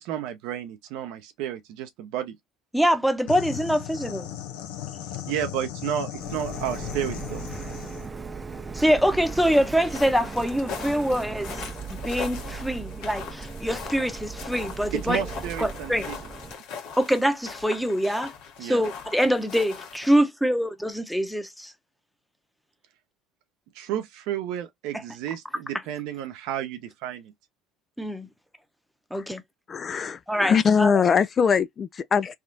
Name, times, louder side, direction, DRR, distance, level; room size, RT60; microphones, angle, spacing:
voice 1, 0.0-2.4 5.3-7.4 14.9-16.2 18.6-18.8 23.7-27.3, right 10 dB, 75° right, 0.7 m, -32 dB
voice 2, 2.7-4.3 8.7-11.6 11.9-15.2 15.6-16.1 17.0-18.3 18.6-21.7 28.0-28.3 29.1-29.4 30.3-30.9, equal, ahead, 0.8 m, -24 dB
sound 1, 3.3-8.1, left 11 dB, 85° left, 0.6 m, -36 dB
Printer, 6.2-16.5, right 5 dB, 25° right, 0.5 m, -38 dB
sound 2, 9.2-20.2, left 6 dB, 70° left, 1.1 m, -40 dB
voice 3, 29.7-32.4, left 6 dB, 35° left, 0.3 m, -22 dB
3.5 x 2.3 x 2.6 m
supercardioid pair, 85°, 0 cm